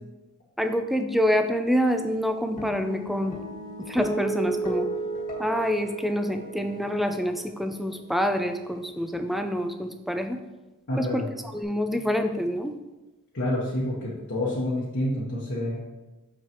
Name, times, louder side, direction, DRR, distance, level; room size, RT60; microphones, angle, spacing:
voice 1, 0.6-3.4 3.9-4.9 5.4-10.4 11.0-11.2 11.5-12.7, equal, ahead, 6 dB, 0.3 m, -26 dB
sound 1, 2.6-9.2, right 2 dB, 40° left, 1.6 m, -35 dB
voice 2, 10.9-11.3 13.3-15.8, left 1 dB, 55° left, -6 dB, 1.2 m, -28 dB
6.5 x 5.9 x 3.0 m, 1.1 s
head